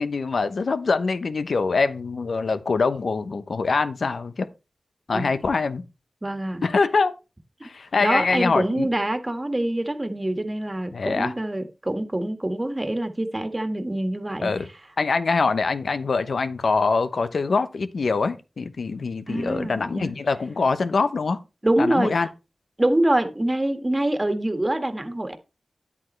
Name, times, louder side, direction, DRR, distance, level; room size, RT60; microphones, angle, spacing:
voice 1, 0.0-4.5 5.1-5.8 6.6-7.1 7.6-8.9 10.9-11.3 14.4-14.7 15.0-21.4 21.8-22.3, left 4 dB, 75° left, 0.9 m, -24 dB
voice 2, 6.2-6.6 7.6-7.7 8.0-14.5 19.3-20.1 21.6-22.3 22.8-25.4, right 1 dB, 25° right, 1.7 m, -25 dB
10.0 x 8.6 x 3.2 m
cardioid pair, 45°, 0 cm